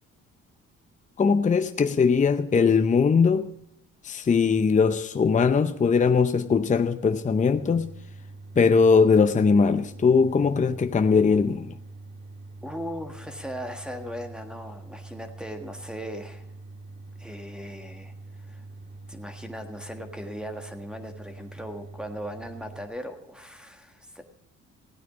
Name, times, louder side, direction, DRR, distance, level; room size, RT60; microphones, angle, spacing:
voice 1, 1.2-3.5 4.0-7.9 8.6-11.7, left 5 dB, 25° left, 0.6 m, -20 dB
sound 1, 7.5-22.9, right 2 dB, 40° right, 2.5 m, -44 dB
voice 2, 12.6-16.4 17.2-18.1 18.5-18.6 19.1-24.2, equal, 5° right, 1.5 m, -38 dB
16.0 x 9.2 x 5.0 m
cardioid pair, 90°, 30 cm